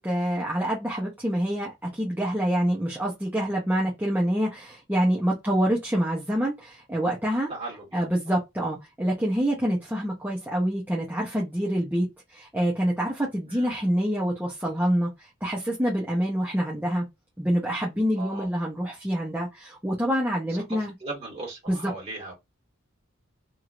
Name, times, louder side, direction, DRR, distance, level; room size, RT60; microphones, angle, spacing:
voice 1, 0.0-7.5 7.9-17.1 17.4-20.9 21.7-21.9, equal, 10° right, 0.8 m, -26 dB
voice 2, 7.5-8.3 13.4-13.9 18.2-18.5 20.5-22.3, right 2 dB, 30° right, 1.8 m, -39 dB
3.0 x 2.7 x 2.4 m
head